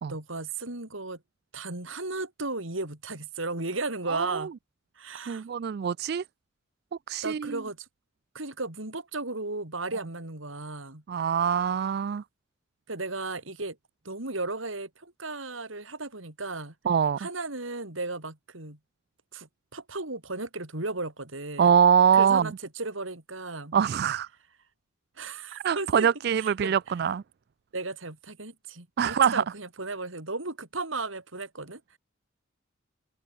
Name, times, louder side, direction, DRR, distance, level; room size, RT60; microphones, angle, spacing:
voice 1, 0.1-1.2 1.5-4.5 5.0-5.5 7.2-7.9 8.3-11.0 12.9-13.8 14.0-16.7 17.2-18.8 19.3-21.7 22.1-23.8 25.2-26.1 26.4-26.7 27.7-32.0, right 3 dB, 80° right, 4.3 m, -35 dB
voice 2, 4.1-4.5 5.3-6.2 7.1-7.6 11.1-12.2 16.9-17.2 21.6-22.5 23.7-24.3 25.5-27.2 29.0-29.4, right 7 dB, 55° right, 0.3 m, -24 dB
head